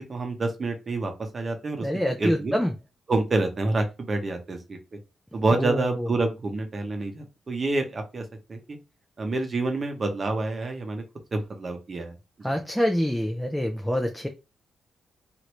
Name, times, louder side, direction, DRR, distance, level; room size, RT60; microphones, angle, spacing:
voice 1, 0.0-1.9 2.2-2.6 3.1-4.8 5.3-8.8 9.2-11.0 11.3-12.6, right 2 dB, 35° right, 0.7 m, -28 dB
voice 2, 1.8-2.7 5.5-6.1 12.4-14.3, equal, ahead, 0.4 m, -26 dB
3.1 x 2.5 x 3.0 m
cardioid pair, 135°, 0 cm